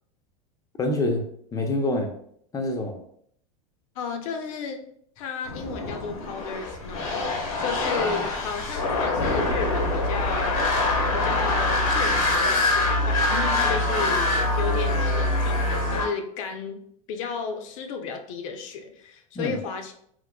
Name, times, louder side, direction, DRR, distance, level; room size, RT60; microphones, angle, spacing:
voice 1, 0.8-2.1 2.5-3.0 8.0-8.1 19.4-19.6, left 1 dB, 20° left, 4 dB, 0.5 m, -26 dB
voice 2, 4.0-4.8 5.2-7.2 7.6-10.6 11.1-16.8 17.1-19.9, left 6 dB, 65° left, 5 dB, 0.6 m, -33 dB
sound 1, 5.5-16.1, left 2 dB, 90° left, 0.9 m, -24 dB
3.7 x 2.6 x 2.2 m, 0.68 s
supercardioid pair, 120°, 18 cm